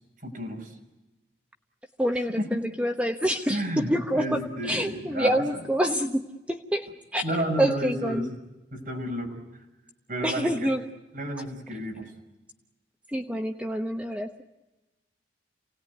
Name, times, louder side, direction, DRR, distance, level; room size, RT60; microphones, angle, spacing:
voice 1, 0.2-0.7 2.4-2.6 3.5-5.4 7.2-8.4 8.7-9.4 10.1-10.7 11.1-12.1, equal, 50° right, 1 dB, 5.6 m, -31 dB
voice 2, 2.0-7.2 7.6-8.3 10.2-10.8 13.1-14.4, equal, 5° right, 4 dB, 1.0 m, -27 dB
27.5 x 18.5 x 9.5 m, 1.1 s
head